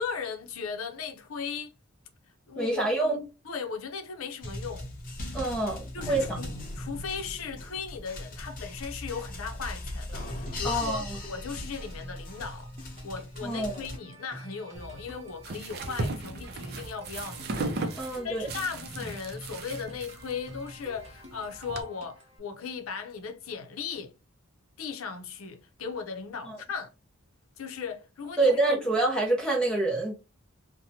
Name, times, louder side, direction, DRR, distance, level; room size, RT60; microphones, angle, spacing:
voice 1, 0.0-1.7 2.5-2.8 3.1-3.2 3.4-4.9 5.4-5.5 5.9-6.5 6.8-12.7 13.0-17.5 17.9-24.1 24.8-26.9 27.6-28.6, left 5 dB, 85° left, 0.6 m, -37 dB
voice 2, 2.6-3.2 5.3-6.4 10.6-11.0 13.4-13.9 17.9-18.5 26.4-26.6 28.4-30.1, right 2 dB, 5° left, 0.6 m, -27 dB
sound 1, 4.4-14.0, left 1 dB, 40° left, 0.7 m, -38 dB
sound 2, 10.1-22.4, right 1 dB, 30° right, 0.8 m, -49 dB
sound 3, 14.7-21.8, right 2 dB, 50° right, 0.4 m, -37 dB
2.8 x 2.1 x 2.7 m
head